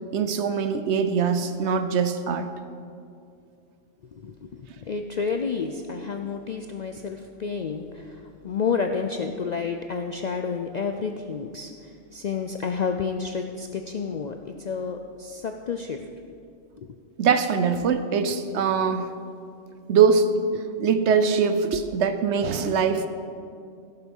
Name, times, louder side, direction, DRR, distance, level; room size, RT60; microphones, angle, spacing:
voice 1, 0.1-2.5 17.2-19.1 19.9-20.3 20.5-23.1, right 6 dB, 70° right, 10 dB, 1.0 m, -22 dB
voice 2, 4.1-16.0 16.8-16.9, left 5 dB, 60° left, 5 dB, 0.4 m, -30 dB
16.0 x 6.8 x 5.4 m, 2.4 s
omnidirectional pair, 1.3 m